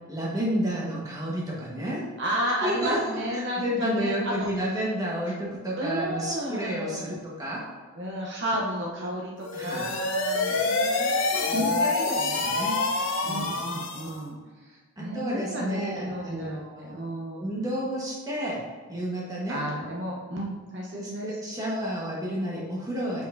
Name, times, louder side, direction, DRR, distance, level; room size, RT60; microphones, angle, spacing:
voice 1, 0.1-2.0 2.6-7.6 9.5-9.9 10.4-10.6 11.3-12.8 13.2-13.7 15.0-17.0 17.4-18.6 18.9-19.6 20.9-23.2, equal, 15° right, -5 dB, 1.3 m, -31 dB
voice 2, 2.2-4.5 5.2-5.3 5.7-7.2 8.0-11.1 11.5-11.9 12.2-12.5 13.3-14.4 14.6-17.5 19.5-21.4, equal, 55° right, -3 dB, 0.9 m, -32 dB
sound 1, 9.4-14.2, left 3 dB, 65° left, 0.7 m, -27 dB
6.7 x 5.5 x 2.6 m, 1.5 s
head